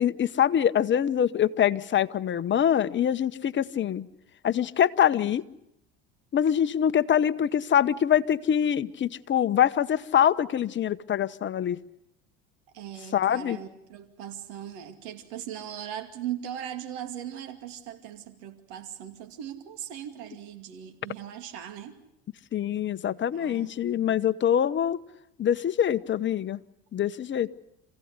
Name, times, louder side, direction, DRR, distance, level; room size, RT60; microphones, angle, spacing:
voice 1, 0.0-4.1 4.4-5.4 6.3-11.8 13.1-13.6 22.5-25.0 25.4-26.6 26.9-27.5, left 9 dB, 35° left, 11 dB, 1.1 m, -24 dB
voice 2, 12.7-22.0 23.3-23.8, right 10 dB, 80° right, 7 dB, 2.6 m, -39 dB
27.0 x 16.5 x 9.7 m, 0.81 s
supercardioid pair, 90°, 32 cm